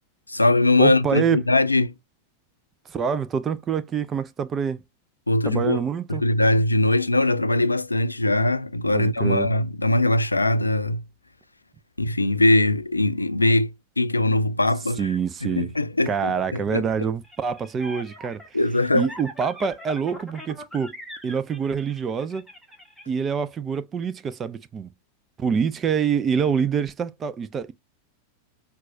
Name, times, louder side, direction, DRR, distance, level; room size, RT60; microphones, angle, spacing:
voice 1, 0.3-1.9 5.3-5.8 6.1-11.0 12.0-16.8 18.5-19.1, left 2 dB, 80° left, 0.4 m, -21 dB
voice 2, 0.8-1.4 2.9-4.8 5.4-6.2 8.9-9.5 15.0-15.7 16.1-18.6 18.9-20.9 21.2-22.5 23.1-24.9 25.4-27.7, right 6 dB, 25° right, 0.4 m, -26 dB
sound 1, 17.2-23.0, equal, ahead, 1.2 m, -41 dB
5.9 x 2.3 x 2.6 m
figure-of-eight pair, 90°, 0 cm